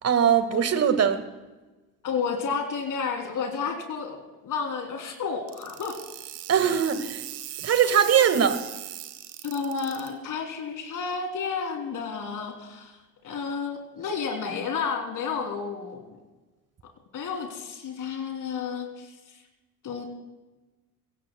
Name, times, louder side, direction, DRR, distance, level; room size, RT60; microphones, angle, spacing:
voice 1, 0.0-1.3 6.5-7.2 7.6-8.6, right 8 dB, 30° right, 10 dB, 1.7 m, -21 dB
voice 2, 2.0-6.0 9.4-13.0 13.2-16.2 17.1-19.1 19.8-20.0, left 5 dB, 40° left, 3 dB, 3.0 m, -31 dB
sound 1, 5.5-10.1, right 14 dB, 60° right, 1.7 m, -39 dB
24.0 x 16.5 x 2.2 m, 1.1 s
figure-of-eight pair, 60°, 46 cm